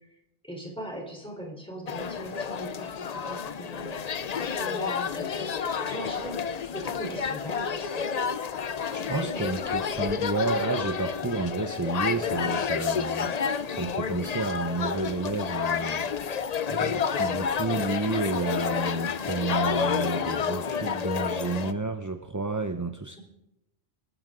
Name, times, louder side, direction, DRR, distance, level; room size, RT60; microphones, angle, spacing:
voice 1, 0.4-6.4 6.7-8.1 9.0-9.8 23.1-23.2, right 1 dB, 5° left, -1 dB, 3.9 m, -40 dB
sound 1, 1.9-21.7, left 6 dB, 45° left, 0.5 m, -30 dB
voice 2, 8.9-16.1 16.7-23.2, right 3 dB, 20° right, 6 dB, 0.6 m, -31 dB
25.5 x 13.5 x 3.8 m, 0.90 s
omnidirectional pair, 1.3 m